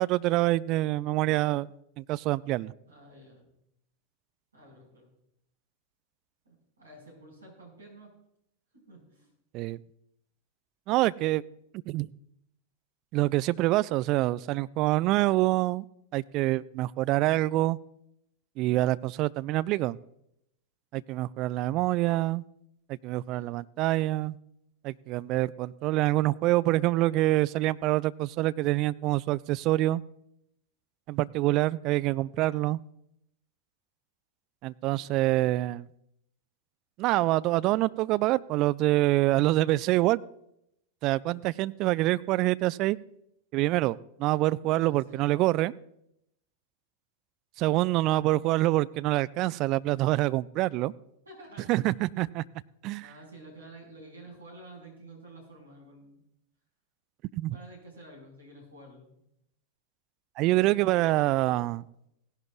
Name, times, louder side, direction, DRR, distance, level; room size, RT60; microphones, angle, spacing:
voice 1, 0.0-1.7 2.0-2.7 9.5-9.8 10.9-11.4 11.9-12.1 13.1-15.8 16.1-17.8 18.6-20.0 20.9-22.4 23.0-24.4 24.8-30.0 31.1-32.8 34.6-35.9 37.0-40.2 41.0-43.0 43.5-45.7 47.6-50.9 51.7-52.4 52.8-53.1 57.4-57.6 60.4-61.8, right 17 dB, 40° right, 18 dB, 0.3 m, -26 dB
voice 2, 2.8-3.5 4.5-5.1 6.5-8.1 8.7-9.3 23.3-23.5 34.9-35.2 44.6-45.3 51.3-51.7 53.0-56.2 57.5-59.1 60.4-61.7, right 2 dB, 75° right, 0 dB, 5.1 m, -50 dB
16.5 x 11.0 x 2.4 m, 0.79 s
figure-of-eight pair, 90°, 0 cm